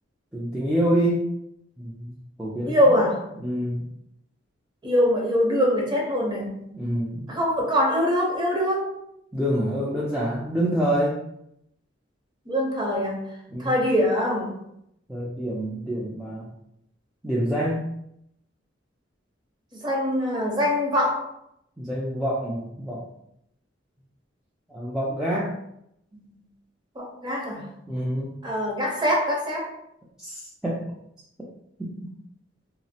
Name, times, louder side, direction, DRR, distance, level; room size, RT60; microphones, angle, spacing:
voice 1, 0.3-1.3 1.8-3.0 3.4-3.9 6.7-7.3 9.3-11.2 13.5-13.8 15.1-16.5 17.2-17.9 21.8-23.0 24.7-25.6 27.9-28.3 30.2-30.9 31.8-32.1, equal, 5° right, -7 dB, 0.3 m, -27 dB
voice 2, 2.6-3.2 4.8-6.7 7.3-8.9 12.5-13.2 13.6-14.5 19.7-21.2 26.1-26.3 27.0-27.6 28.4-29.7, equal, 25° right, -2 dB, 0.7 m, -23 dB
2.8 x 2.0 x 2.7 m, 0.77 s
head